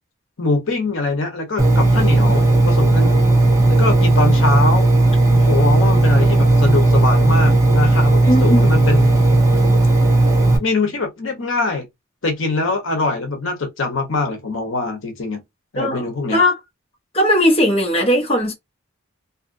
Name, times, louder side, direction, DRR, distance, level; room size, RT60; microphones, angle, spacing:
voice 1, 0.4-3.3 3.7-4.9 5.3-9.1 10.6-11.9 12.2-15.4 15.7-16.4, left 3 dB, 70° left, 0.9 m, -23 dB
Engine, 1.6-10.6, right 2 dB, 15° right, 0.9 m, -14 dB
voice 2, 8.3-8.8 15.8-16.6 17.1-18.5, left 1 dB, 30° left, 0.9 m, -18 dB
2.7 x 2.4 x 2.5 m
head